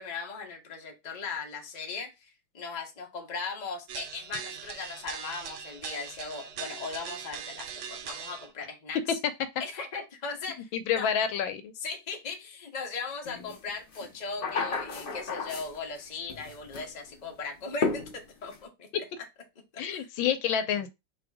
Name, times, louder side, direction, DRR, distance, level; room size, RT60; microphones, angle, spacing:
voice 1, 0.0-9.0 9.6-10.7 10.9-11.1 11.8-18.9 19.7-20.1, left 4 dB, 30° left, 0.8 m, -38 dB
sound 1, 3.9-8.5, right 7 dB, 70° right, 1.1 m, -40 dB
voice 2, 10.7-11.7 18.9-19.0 19.8-20.9, left 8 dB, 80° left, 1.4 m, -28 dB
sound 2, 13.5-13.6 13.9-16.0 16.3-16.9 17.8-18.6, left 4 dB, 65° left, 0.5 m, -33 dB
3.4 x 3.3 x 4.7 m
omnidirectional pair, 2.2 m